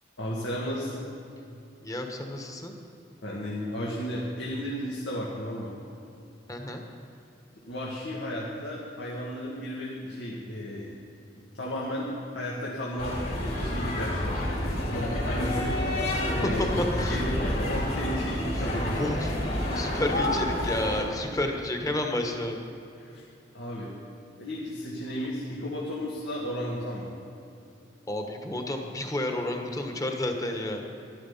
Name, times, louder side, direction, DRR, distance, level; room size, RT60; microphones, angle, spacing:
voice 1, 0.2-1.1 3.2-5.7 7.7-11.0 11.5-13.2 13.6-16.7 17.0-19.0 23.0-23.2 23.5-23.9 24.4-27.1, equal, 90° left, -5 dB, 2.0 m, -34 dB
voice 2, 1.8-2.7 6.5-6.8 16.6-17.2 18.5-18.7 18.9-19.3 19.7-22.6 28.1-30.9, left 1 dB, 20° left, 3 dB, 1.3 m, -31 dB
sound 1, 13.0-21.0, left 1 dB, 55° left, 4.0 m, -29 dB
13.0 x 11.5 x 5.7 m, 2.7 s
head